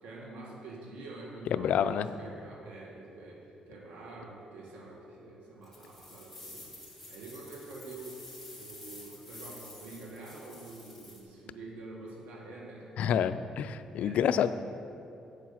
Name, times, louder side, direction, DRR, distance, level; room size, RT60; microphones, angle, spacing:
voice 1, 0.0-8.2 8.5-13.1 14.0-14.5, right 2 dB, 90° right, -2 dB, 1.8 m, -46 dB
voice 2, 1.5-2.1 13.0-14.5, left 9 dB, 70° left, 12 dB, 0.4 m, -28 dB
sound 1, 5.6-11.2, left 2 dB, ahead, 2.5 m, -49 dB
8.2 x 7.4 x 5.7 m, 2.7 s
cardioid pair, 115°, 2 cm